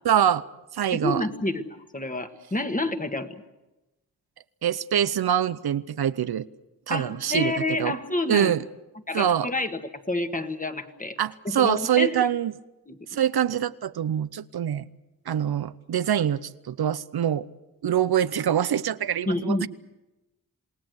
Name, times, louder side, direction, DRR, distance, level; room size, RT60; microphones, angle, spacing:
voice 1, 0.0-0.4 0.7-1.3 4.6-6.5 6.9-8.0 8.3-8.6 9.1-9.5 11.2-12.5 13.1-14.8 15.3-17.4 17.8-19.7, right 9 dB, 80° right, 15 dB, 0.7 m, -24 dB
voice 2, 1.0-1.6 1.9-3.3 6.9-8.5 9.1-9.8 10.1-11.2 11.4-12.3 12.9-13.0 19.3-19.7, left 2 dB, 20° left, 7 dB, 1.6 m, -28 dB
27.5 x 19.0 x 8.0 m, 1.0 s
wide cardioid pair, 120°, 37 cm